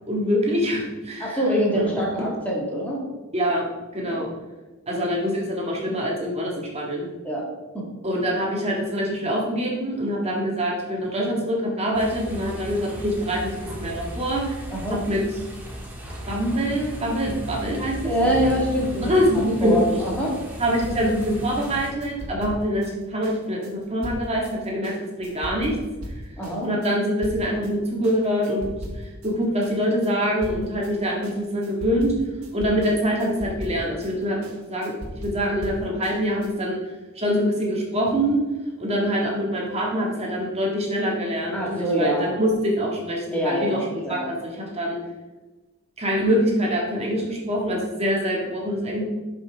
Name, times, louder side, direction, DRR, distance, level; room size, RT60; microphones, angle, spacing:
voice 1, 0.1-1.4 1.7-1.8 3.3-3.7 3.9-4.3 4.9-7.1 8.0-14.6 14.9-15.2 16.3-18.1 18.4-18.5 19.0-20.0 20.6-25.8 26.6-28.7 29.0-32.1 32.5-34.4 34.6-34.9 35.2-36.8 37.2-38.4 38.8-44.4 44.7-45.0 46.0-49.0, equal, 30° right, -2 dB, 1.8 m, -24 dB
voice 2, 1.2-3.0 4.0-4.2 7.2-7.5 7.7-7.9 14.7-15.0 18.0-20.4 26.4-26.7 41.5-42.3 43.3-43.8 44.0-44.2, equal, 5° left, -4 dB, 1.8 m, -25 dB
sound 1, 11.9-21.9, equal, 10° right, 1.6 m, -36 dB
sound 2, 20.8-27.7 28.0-29.3 29.6-36.5, equal, 80° right, 1.5 m, -38 dB
11.0 x 5.6 x 3.4 m, 1.2 s
head